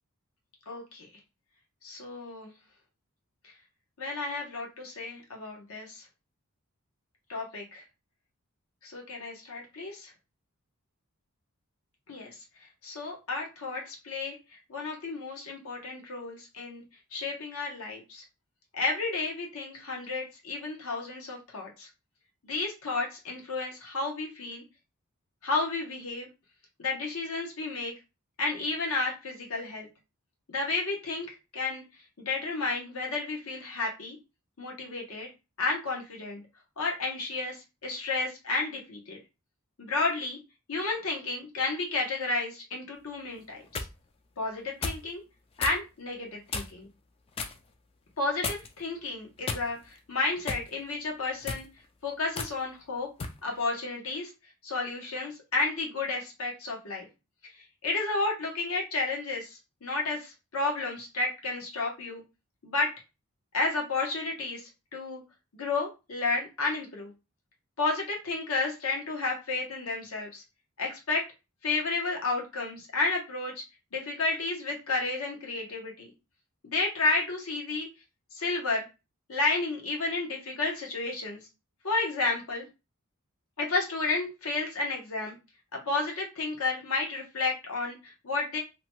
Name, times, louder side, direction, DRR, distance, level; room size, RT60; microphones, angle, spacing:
voice 1, 0.7-1.1 1.8-2.5 4.0-6.0 7.3-7.8 8.8-10.1 12.1-12.4 12.8-14.4 14.7-16.8 17.1-18.2 18.7-21.9 22.4-24.6 25.4-26.3 26.8-27.9 28.4-29.9 30.5-31.3 31.5-31.8 32.3-34.2 34.6-35.3 35.6-36.4 36.8-39.2 39.8-40.4 40.7-43.6 44.4-45.2 45.6-46.9 48.2-51.7 52.0-53.1 53.4-54.3 54.6-57.1 57.8-62.2 62.6-62.9 63.5-65.2 65.5-67.1 67.8-70.4 70.8-71.2 71.6-73.5 73.9-76.1 76.6-77.9 78.3-78.8 79.3-81.4 81.8-82.6 83.6-85.3 85.7-88.6, left 3 dB, 70° left, 0 dB, 0.8 m, -31 dB
sound 1, 43.4-43.9 44.8-45.1 45.6-45.8 46.5-46.9 47.4-47.6 48.4-48.8 49.4-50.0 50.5-50.7 51.3-51.7 52.4-52.5 53.2-53.4, left 4 dB, 25° left, 0.3 m, -34 dB
2.8 x 2.2 x 2.9 m, 0.27 s
head